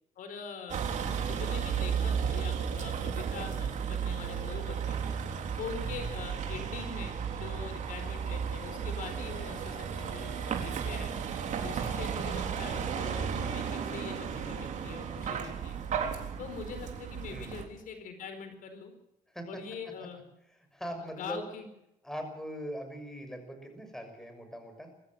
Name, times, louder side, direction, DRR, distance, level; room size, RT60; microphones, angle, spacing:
voice 1, 0.2-0.9 1.2-5.0 5.6-11.1 11.5-15.8 16.4-18.9 19.5-20.2 21.1-21.7, left 6 dB, 70° left, 7 dB, 4.4 m, -43 dB
Vehicle, 0.7-17.6, right 7 dB, 60° right, 3.9 m, -34 dB
voice 2, 19.3-19.6 20.7-21.4 22.0-24.9, equal, 5° left, 5 dB, 6.2 m, -41 dB
23.5 x 14.5 x 7.8 m, 0.85 s
cardioid pair, 120°, 14 cm